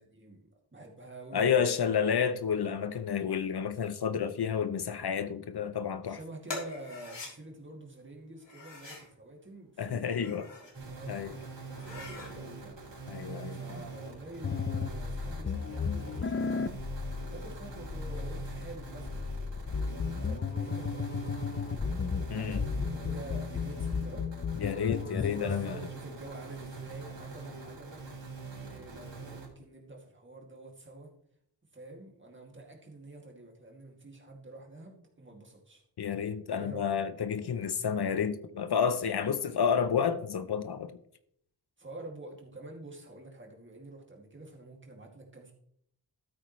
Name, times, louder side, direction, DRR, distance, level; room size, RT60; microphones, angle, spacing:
voice 1, 0.0-1.7 2.2-2.4 6.1-12.8 13.5-16.8 17.3-21.9 22.4-24.3 25.0-31.1 31.7-35.8 36.5-37.0 41.8-45.5, right 2 dB, 25° right, 2.3 m, -48 dB
voice 2, 1.3-6.2 9.8-10.5 11.1-11.3 13.1-13.6 22.3-22.6 24.6-25.8 36.0-41.0, left 7 dB, 65° left, 0.7 m, -30 dB
sound 1, 6.5-7.3 8.4-9.1 10.0-10.8 11.2-11.3 11.7-12.3, left 3 dB, 80° left, 3.6 m, -43 dB
sound 2, 10.7-29.5, right 4 dB, 85° right, 3.8 m, -44 dB
sound 3, 14.4-25.7, left 5 dB, 30° left, 0.5 m, -34 dB
13.0 x 8.6 x 3.1 m
wide cardioid pair, 125°, 43 cm